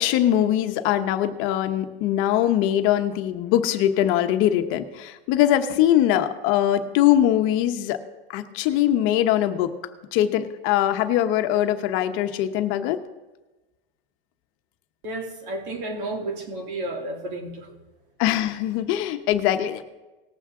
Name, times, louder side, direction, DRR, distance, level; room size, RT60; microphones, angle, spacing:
voice 1, 0.0-8.0 8.3-9.7 10.1-13.0 18.2-19.8, left 12 dB, 45° left, 8 dB, 1.0 m, -22 dB
voice 2, 15.0-17.8, right 1 dB, 65° right, 2 dB, 2.8 m, -32 dB
19.0 x 7.1 x 3.7 m, 1.1 s
supercardioid pair, 145°, 29 cm